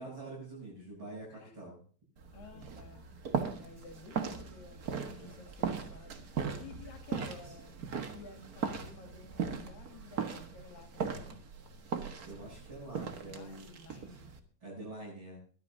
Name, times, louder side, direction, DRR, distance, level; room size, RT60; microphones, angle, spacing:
voice 1, 0.0-1.8 5.2-5.3 12.3-13.7 14.6-15.4, right 2 dB, 35° right, -8 dB, 8.9 m, -45 dB
sound 1, 2.2-14.4, right 6 dB, 75° right, 0.8 m, -39 dB
voice 2, 2.3-3.0 3.6-7.8 8.1-11.4 13.1-14.3, left 3 dB, 75° left, 5 dB, 4.3 m, -53 dB
22.5 x 11.5 x 2.7 m, 0.43 s
omnidirectional pair, 4.0 m